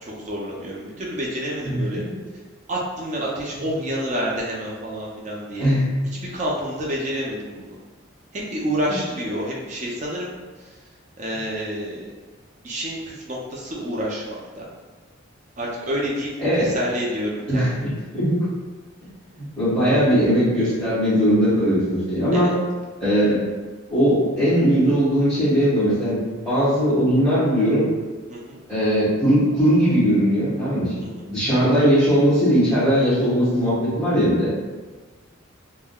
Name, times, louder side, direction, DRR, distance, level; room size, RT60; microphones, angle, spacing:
voice 1, 0.0-2.0 2.7-5.7 6.3-7.8 8.3-10.3 10.6-10.8 11.2-12.1 12.6-14.7 15.6-16.3 16.5-17.7 22.3-22.5 28.3-28.6 31.0-31.3, equal, 35° right, -3 dB, 0.5 m, -28 dB
voice 2, 17.5-18.4 19.3-22.5 23.0-23.4 23.9-26.2 26.4-27.8 28.7-30.9 31.2-34.5, equal, ahead, -18 dB, 1.3 m, -19 dB
3.5 x 2.1 x 2.2 m, 1.4 s
head